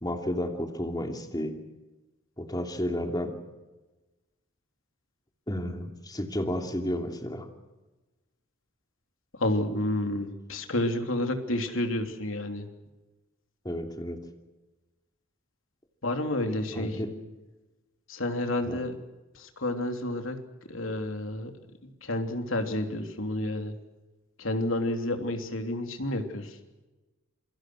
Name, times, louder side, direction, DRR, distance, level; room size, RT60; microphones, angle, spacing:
voice 1, 0.0-1.6 2.4-3.3 5.5-7.4 13.6-14.2 16.7-17.1 18.7-18.8, left 1 dB, 20° left, 4 dB, 2.9 m, -32 dB
voice 2, 9.3-12.7 16.0-17.0 18.1-19.0 19.3-20.4 20.7-21.5 21.8-23.7 24.4-26.5, left 1 dB, 70° left, 5 dB, 3.3 m, -30 dB
28.0 x 24.0 x 6.4 m, 1.1 s
head